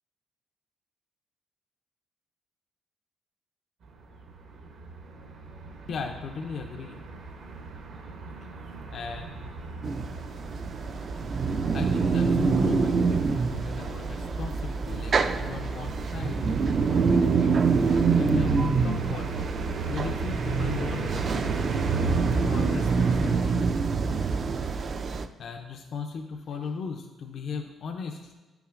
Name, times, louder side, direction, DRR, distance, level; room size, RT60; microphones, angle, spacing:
sound 1, 3.8-23.3, right 3 dB, 65° right, 0.8 m, -36 dB
voice 1, 5.9-7.0 8.9-9.5 11.7-17.5 18.2-19.5 19.9-21.1 22.4-23.6 25.1-28.3, left 5 dB, 55° left, 3 dB, 0.4 m, -37 dB
sound 2, 9.8-25.3, right 5 dB, 40° right, 0.3 m, -26 dB
9.4 x 5.7 x 2.5 m, 1.3 s
cardioid pair, 130°, 0 cm